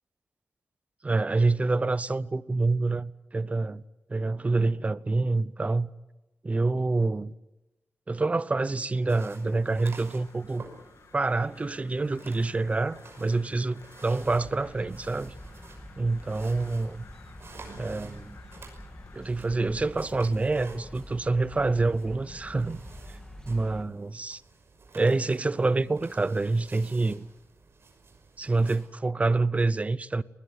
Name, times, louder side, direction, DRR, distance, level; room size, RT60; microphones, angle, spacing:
voice 1, 1.0-3.8 4.1-5.9 6.4-7.3 8.1-10.6 11.1-15.3 16.0-17.0 17.8-18.4 19.1-22.8 23.4-24.4 24.9-27.3 28.4-30.2, right 3 dB, 25° right, 0.8 m, -27 dB
sound 1, 9.1-28.8, right 4 dB, 55° right, 5.9 m, -51 dB
Crow, 9.2-19.3, left 6 dB, 80° left, 1.8 m, -56 dB
sound 2, 14.2-23.8, equal, 15° left, 2.3 m, -46 dB
21.0 x 20.0 x 9.8 m
wide cardioid pair, 105°, 5 cm